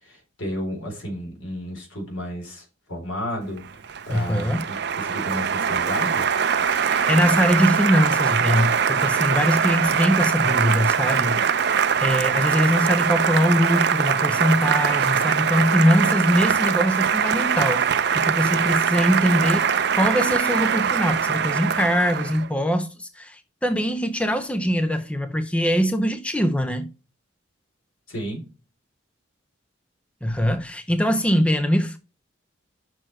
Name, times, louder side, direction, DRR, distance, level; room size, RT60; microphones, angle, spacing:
voice 1, 0.0-6.3 28.1-28.4, equal, 75° left, 3.8 m, -32 dB
Applause, 3.6-22.5, right 7 dB, 55° right, 0.5 m, -22 dB
voice 2, 4.1-4.7 6.6-11.6 12.0-26.9 30.2-32.0, equal, 5° left, 0.5 m, -22 dB
6.5 x 6.1 x 4.5 m
head